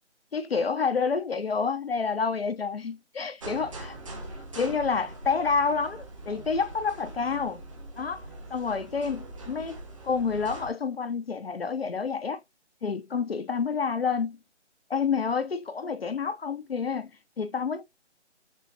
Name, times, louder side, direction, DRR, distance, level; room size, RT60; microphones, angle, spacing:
voice 1, 0.3-4.0 4.6-7.6 8.0-8.2 8.5-12.4 12.8-14.4 14.9-17.1 17.4-17.8, left 5 dB, 55° left, 0.7 m, -28 dB
sound 1, 3.4-10.7, right 2 dB, 30° right, 0.9 m, -42 dB
6.2 x 2.2 x 2.7 m
figure-of-eight pair, 155°, 35 cm